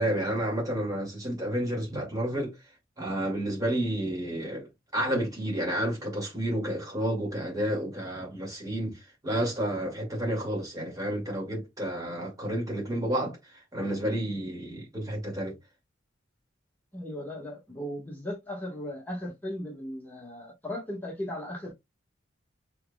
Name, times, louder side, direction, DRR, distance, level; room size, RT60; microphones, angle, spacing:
voice 1, 0.0-2.6 3.0-15.5, right 1 dB, 20° right, 2.3 m, -30 dB
voice 2, 16.9-21.7, left 1 dB, 10° left, 1.5 m, -37 dB
6.2 x 3.5 x 2.3 m
head